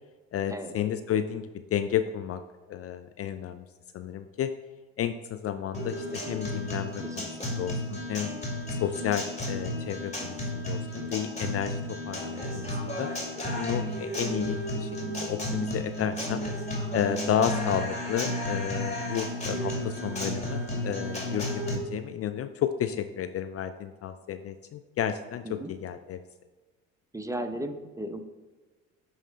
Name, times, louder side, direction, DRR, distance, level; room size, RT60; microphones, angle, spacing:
voice 1, 0.3-2.4 2.7-3.6 3.9-4.5 5.0-8.3 8.7-13.1 13.6-14.9 15.2-16.4 16.9-26.2, left 9 dB, 45° left, 9 dB, 0.4 m, -32 dB
Guitar, 5.7-21.8, left 1 dB, 20° left, 2.4 m, -33 dB
voice 2, 7.0-7.5 25.4-25.7 27.1-28.2, right 1 dB, 10° right, 7 dB, 0.8 m, -36 dB
9.4 x 3.1 x 5.2 m, 1.3 s
hypercardioid pair, 65°, 35 cm